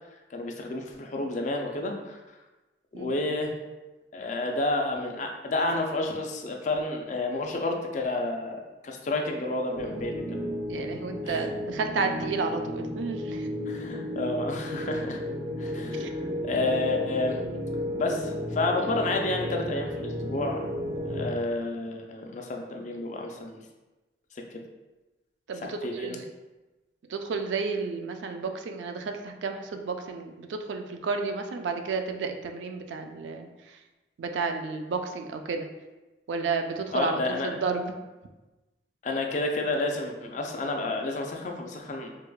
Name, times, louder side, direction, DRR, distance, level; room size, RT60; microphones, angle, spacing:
voice 1, 0.3-2.2 2.9-3.5 4.1-10.4 11.2-11.4 13.7-15.2 15.6-17.4 17.9-20.7 21.1-23.6 25.6-26.2 36.9-37.5 39.0-42.1, left 2 dB, 45° left, 2 dB, 0.4 m, -30 dB
sound 1, 9.7-21.3, equal, 15° right, 0.4 m, -33 dB
voice 2, 10.7-13.5 15.9-16.1 25.5-26.2 27.1-33.5 34.2-35.7 36.3-38.0, right 4 dB, 90° right, 5 dB, 0.4 m, -31 dB
4.6 x 2.3 x 2.3 m, 1.1 s
head